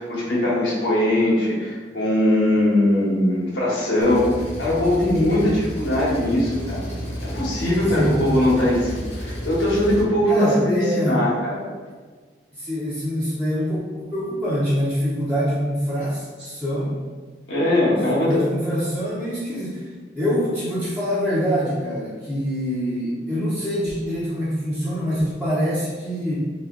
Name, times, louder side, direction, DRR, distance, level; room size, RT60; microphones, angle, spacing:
voice 1, 0.0-6.9 7.2-11.7 17.5-18.4, left 1 dB, 90° left, -6 dB, 1.2 m, -21 dB
Engine, 4.0-10.0, equal, 35° left, 0.8 m, -31 dB
voice 2, 7.9-8.4 10.3-11.2 12.5-17.0 18.0-19.9 20.1-26.4, equal, 10° right, -11 dB, 0.7 m, -25 dB
3.0 x 2.8 x 3.6 m, 1.5 s
head